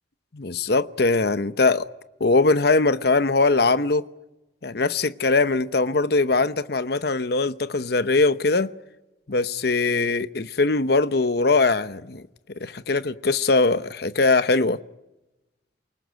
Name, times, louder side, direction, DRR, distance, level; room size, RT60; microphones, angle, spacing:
voice 1, 0.3-1.9 2.2-4.0 4.6-8.7 9.3-12.2 12.6-14.8, left 3 dB, 60° left, 0.9 m, -21 dB
28.5 x 19.5 x 9.2 m
head